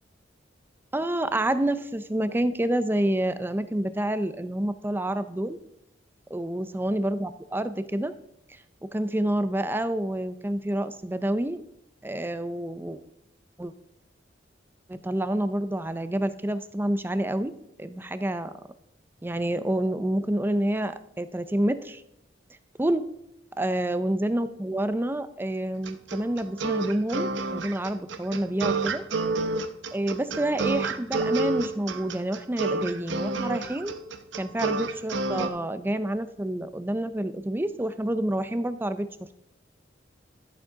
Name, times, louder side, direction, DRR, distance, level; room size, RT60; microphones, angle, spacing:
voice 1, 0.9-5.6 6.3-8.1 8.9-11.6 12.0-13.0 13.6-13.7 14.9-17.5 17.8-18.5 19.2-22.0 22.8-23.0 23.6-29.0 29.9-33.9 34.3-39.1, right 1 dB, 10° right, 12 dB, 0.5 m, -28 dB
sound 1, 25.9-35.5, right 3 dB, 75° right, 0.7 m, -29 dB
11.5 x 7.3 x 3.6 m, 0.81 s
head